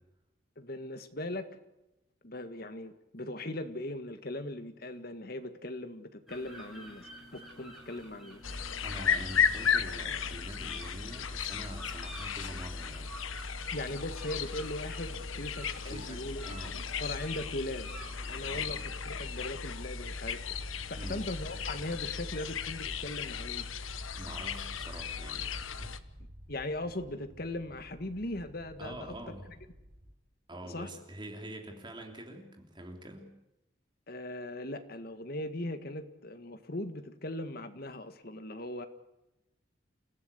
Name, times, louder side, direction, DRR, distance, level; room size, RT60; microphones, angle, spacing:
voice 1, 0.6-1.5 2.2-8.4 13.7-16.5 17.0-17.9 18.3-23.7 26.5-29.1 30.6-30.9 34.1-38.9, left 1 dB, 50° left, 1.8 m, -39 dB
sound 1, 6.3-18.9, equal, ahead, 6.7 m, -51 dB
sound 2, 8.4-26.0, left 7 dB, 90° left, 1.2 m, -35 dB
voice 2, 8.8-13.2 15.8-16.8 18.5-18.7 21.0-21.3 24.1-26.0 28.8-29.5 30.5-33.3, right 1 dB, 25° right, 3.4 m, -45 dB
sound 3, 18.1-30.1, equal, 45° right, 5.5 m, -52 dB
29.5 x 15.0 x 8.4 m
head